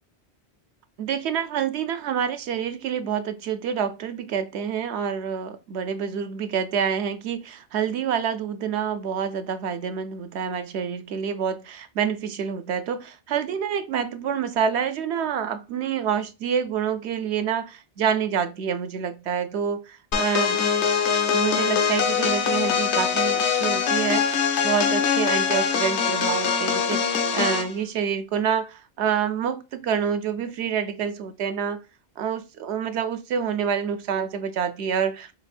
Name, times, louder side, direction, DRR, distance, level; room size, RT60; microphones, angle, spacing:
voice 1, 1.0-20.6 21.3-31.8 32.2-35.4, right 7 dB, 75° right, 0.9 m, -27 dB
sound 1, 20.1-27.7, left 6 dB, 75° left, 1.0 m, -23 dB
4.5 x 3.3 x 2.2 m
omnidirectional pair, 1.2 m